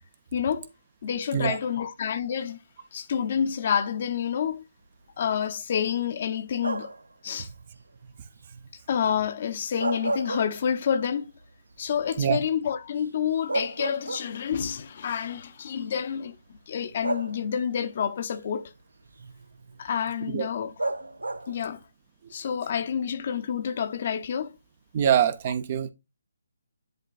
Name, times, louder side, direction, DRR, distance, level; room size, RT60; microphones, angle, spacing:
voice 1, 0.3-0.7 1.0-2.6 2.9-4.6 5.2-6.9 7.2-7.5 8.9-11.3 11.8-16.4 16.7-18.7 19.8-20.7 21.5-21.8 22.3-24.5, left 8 dB, 45° left, 0.7 m, -28 dB
sound 1, 6.6-7.1 9.6-11.0 11.4-11.5 13.0-13.1 13.5-14.6 15.7-15.8 17.0-17.8 20.8-21.7, right 2 dB, 85° right, 0.6 m, -31 dB
voice 2, 24.9-25.9, right 9 dB, 35° right, 0.7 m, -24 dB
10.5 x 3.7 x 2.5 m
figure-of-eight pair, 150°, 0 cm